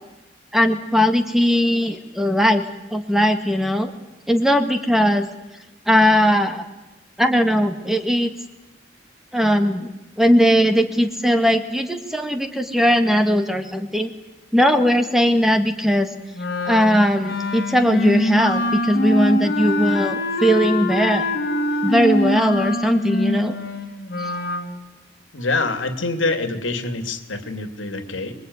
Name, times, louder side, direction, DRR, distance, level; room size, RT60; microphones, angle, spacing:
voice 1, 0.5-2.7 2.9-3.9 4.3-5.3 5.9-6.7 7.2-8.3 9.3-9.9 10.2-14.1 14.5-16.1 16.7-21.3 21.8-23.5 24.2-24.3, equal, ahead, 7 dB, 1.8 m, -19 dB
Wind instrument woodwind instrument, 16.3-24.7, left 1 dB, 55° left, 3.6 m, -24 dB
voice 2, 25.3-28.4, left 3 dB, 85° left, 9 dB, 2.7 m, -25 dB
26.0 x 22.5 x 9.7 m, 1.0 s
head